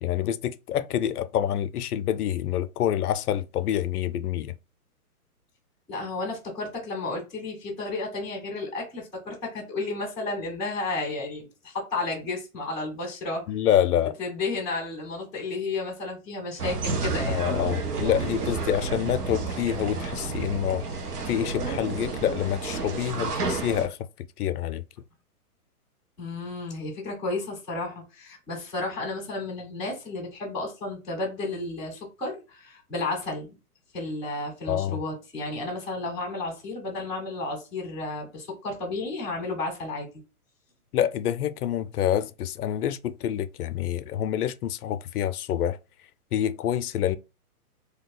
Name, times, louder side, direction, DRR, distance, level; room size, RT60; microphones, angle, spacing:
voice 1, 0.0-4.5 13.5-14.1 17.3-20.8 21.3-24.0 24.4-24.8 34.7-35.0 40.9-45.8 46.3-47.2, left 10 dB, 75° left, 0.5 m, -27 dB
voice 2, 5.9-13.4 14.2-17.4 26.2-33.5 33.9-40.1, left 2 dB, ahead, 0.4 m, -32 dB
sound 1, 16.6-23.9, right 4 dB, 85° right, 0.9 m, -30 dB
2.7 x 2.3 x 3.7 m
hypercardioid pair, 135°, 45 cm